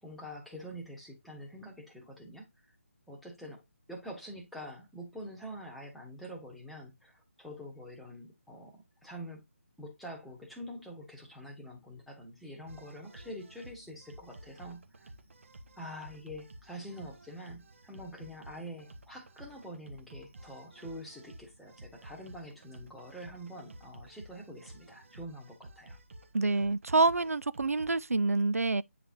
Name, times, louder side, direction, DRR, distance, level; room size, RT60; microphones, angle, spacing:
voice 1, 0.0-2.5 3.1-3.6 3.9-9.4 9.8-15.1 15.8-26.0, equal, ahead, 1.1 m, -46 dB
sound 1, 12.7-28.0, right 1 dB, 60° right, 1.2 m, -53 dB
voice 2, 26.3-28.8, right 3 dB, 90° right, 0.4 m, -27 dB
8.5 x 4.0 x 2.7 m
figure-of-eight pair, 155°, 8 cm